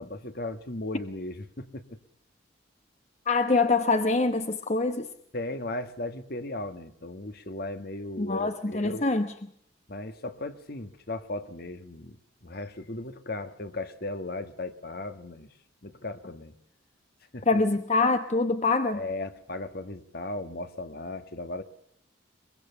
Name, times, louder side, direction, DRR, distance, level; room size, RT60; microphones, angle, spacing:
voice 1, 0.0-1.8 5.3-9.1 9.9-12.2 12.4-15.5 15.8-16.5 17.3-17.6 18.9-21.6, left 2 dB, 50° left, 10 dB, 1.5 m, -36 dB
voice 2, 3.3-5.1 8.2-9.3 17.5-19.0, left 3 dB, 35° left, 8 dB, 1.0 m, -24 dB
23.5 x 22.5 x 6.9 m, 0.71 s
head